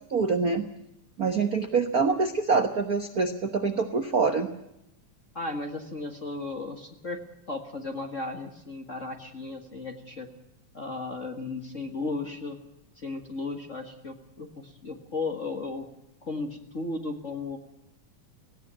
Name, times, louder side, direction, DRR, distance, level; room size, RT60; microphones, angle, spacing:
voice 1, 0.1-0.7 1.2-4.5, right 4 dB, 55° right, 8 dB, 1.0 m, -25 dB
voice 2, 5.3-7.2 7.5-10.3 10.7-12.6 13.0-15.9 16.2-17.6, left 3 dB, 35° left, 5 dB, 1.4 m, -35 dB
18.5 x 17.0 x 8.8 m, 0.82 s
omnidirectional pair, 3.5 m